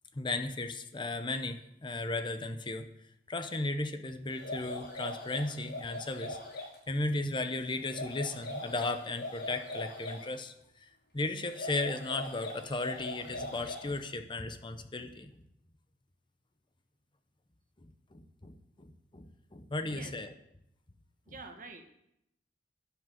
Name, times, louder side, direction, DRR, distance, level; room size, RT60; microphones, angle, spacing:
voice 1, 0.1-2.9 3.3-10.9 11.1-15.3 17.8-20.3, left 2 dB, 25° left, 9 dB, 0.7 m, -36 dB
sound 1, 4.3-6.8 7.8-10.3 11.4-14.0, left 1 dB, 70° left, 5.1 m, -41 dB
voice 2, 19.8-20.2 21.3-21.8, right 3 dB, 50° right, 5 dB, 1.7 m, -47 dB
11.5 x 6.3 x 9.1 m, 0.79 s
head